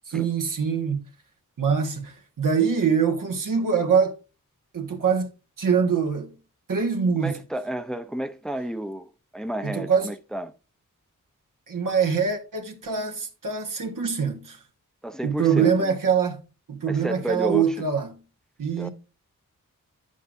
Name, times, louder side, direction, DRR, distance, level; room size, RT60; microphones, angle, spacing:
voice 1, 0.1-1.0 1.6-4.2 4.7-5.3 5.6-6.3 6.7-7.4 9.6-10.1 11.7-14.6 15.2-16.4 16.7-18.2 18.6-18.9, right 6 dB, 80° right, 1.5 m, -24 dB
voice 2, 7.2-10.5 15.0-16.0 16.9-17.8 18.8-18.9, equal, ahead, 0.6 m, -31 dB
10.5 x 8.1 x 2.6 m
wide cardioid pair, 110°, 32 cm